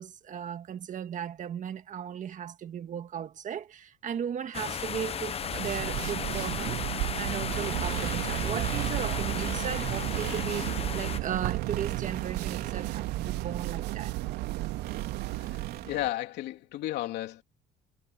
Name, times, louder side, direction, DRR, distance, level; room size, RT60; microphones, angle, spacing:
voice 1, 0.0-14.2, right 9 dB, 50° right, 1.9 m, -36 dB
sound 1, 4.5-11.2, left 7 dB, 35° left, 0.8 m, -35 dB
sound 2, 5.4-15.9, right 21 dB, 80° right, 0.4 m, -34 dB
sound 3, 7.5-16.1, right 12 dB, 65° right, 3.5 m, -39 dB
voice 2, 15.3-17.4, left 15 dB, 80° left, 3.3 m, -34 dB
cardioid pair, 110°, 17 cm